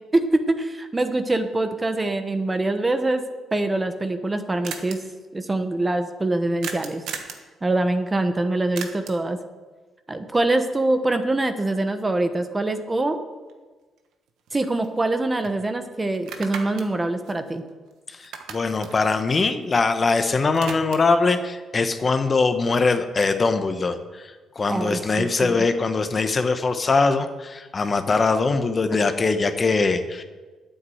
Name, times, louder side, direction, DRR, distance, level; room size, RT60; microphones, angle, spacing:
voice 1, 0.1-3.2 3.5-5.0 5.3-7.0 7.6-9.4 10.1-13.2 14.5-17.6 24.7-25.6, right 2 dB, 20° right, 8 dB, 1.1 m, -24 dB
sound 1, 4.3-4.4 4.6-5.0 6.6-7.5 8.8-9.3 13.5-13.6 14.0-15.1 15.4-15.6 16.1-17.9 18.2-20.0 20.3-21.2, right 6 dB, 80° right, 1.3 m, -37 dB
voice 2, 18.1-30.2, left 4 dB, 35° left, 8 dB, 1.0 m, -22 dB
9.5 x 8.2 x 7.8 m, 1.3 s
cardioid pair, 90°, 0 cm